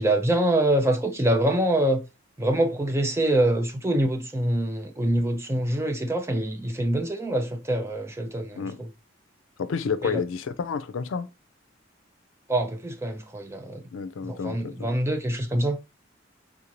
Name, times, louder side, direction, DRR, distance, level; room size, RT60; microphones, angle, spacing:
voice 1, 0.0-2.0 2.4-8.9 10.0-10.2 12.5-13.8 14.2-15.8, right 1 dB, 15° right, 0.5 m, -25 dB
voice 2, 9.6-11.3 13.9-14.9, left 5 dB, 85° left, 0.4 m, -30 dB
3.6 x 2.6 x 2.9 m
head